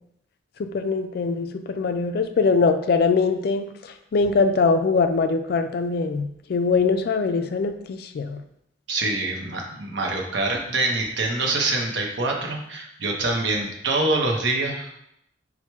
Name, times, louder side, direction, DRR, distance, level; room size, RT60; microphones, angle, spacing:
voice 1, 0.6-3.7 4.1-8.4, left 4 dB, 55° left, 7 dB, 0.3 m, -22 dB
voice 2, 8.9-15.0, right 2 dB, 70° right, 1 dB, 0.6 m, -25 dB
4.4 x 2.1 x 4.5 m, 0.76 s
head